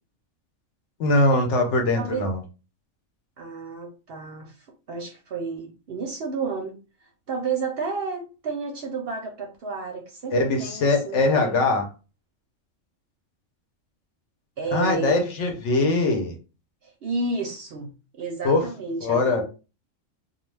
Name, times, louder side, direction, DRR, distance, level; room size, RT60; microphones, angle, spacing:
voice 1, 1.0-2.4 10.3-11.9 14.7-16.4 18.4-18.7 19.0-19.4, left 2 dB, 65° left, 3 dB, 0.9 m, -22 dB
voice 2, 2.0-2.3 3.4-4.5 4.9-6.7 7.3-11.5 14.6-15.3 16.8-17.9 18.2-19.4, right 4 dB, 60° right, 2 dB, 0.7 m, -31 dB
2.3 x 2.3 x 3.2 m, 0.31 s
omnidirectional pair, 1.4 m